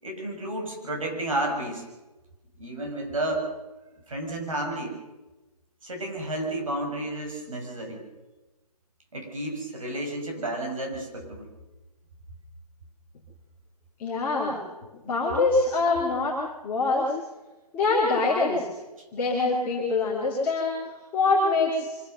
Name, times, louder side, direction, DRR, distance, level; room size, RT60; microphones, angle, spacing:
voice 1, 0.0-1.9 2.6-3.5 4.1-5.0 5.8-8.0 9.1-11.5 19.0-19.1, right 1 dB, 55° right, 1 dB, 6.5 m, -31 dB
voice 2, 14.0-14.6 15.0-16.4 16.6-17.2 17.7-18.7 19.1-20.8 21.1-22.0, left 3 dB, 5° left, -7 dB, 2.5 m, -24 dB
25.0 x 15.5 x 6.6 m, 1.1 s
hypercardioid pair, 175°, 20 cm